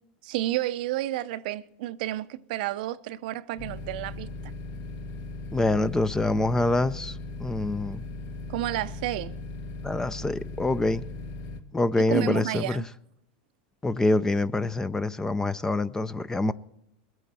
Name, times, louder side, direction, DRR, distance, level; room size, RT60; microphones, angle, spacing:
voice 1, 0.2-4.5 8.5-9.3 12.0-12.8, right 15 dB, 70° right, 0.6 m, -31 dB
sound 1, 3.6-11.6, left 2 dB, 55° left, 1.3 m, -38 dB
voice 2, 5.5-7.1 7.4-8.0 9.8-11.0 11.7-12.8 13.8-16.5, left 2 dB, 10° left, 0.5 m, -25 dB
21.0 x 9.1 x 4.3 m
supercardioid pair, 120°, 5 cm